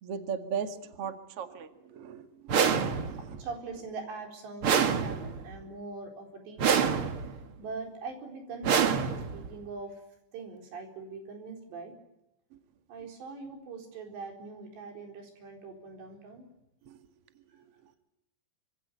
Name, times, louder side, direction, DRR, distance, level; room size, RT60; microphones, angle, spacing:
voice 1, 0.0-3.4 16.9-17.0, right 7 dB, 45° right, 7 dB, 2.3 m, -38 dB
sound 1, 2.5-3.4 4.6-5.5 6.6-7.4 8.6-9.5, right 7 dB, 65° right, 1.3 m, -27 dB
voice 2, 3.1-8.9 9.3-10.0 10.3-12.0 12.9-16.5, right 4 dB, 90° right, 3 dB, 6.5 m, -42 dB
25.5 x 25.5 x 8.3 m, 0.87 s
omnidirectional pair, 4.9 m